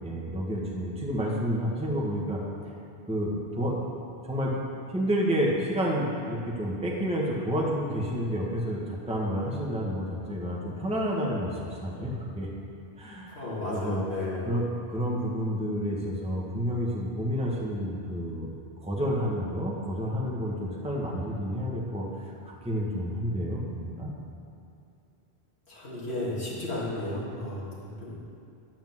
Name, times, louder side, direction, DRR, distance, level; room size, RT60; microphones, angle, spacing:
voice 1, 0.0-2.4 3.1-3.9 4.3-4.5 4.9-12.5 13.0-13.4 13.7-14.0 14.5-18.5 18.8-24.1, equal, 5° right, -4 dB, 1.4 m, -30 dB
voice 2, 13.3-14.6 25.7-28.2, left 1 dB, 75° left, -8 dB, 3.0 m, -33 dB
10.0 x 5.9 x 7.6 m, 2.7 s
omnidirectional pair, 1.1 m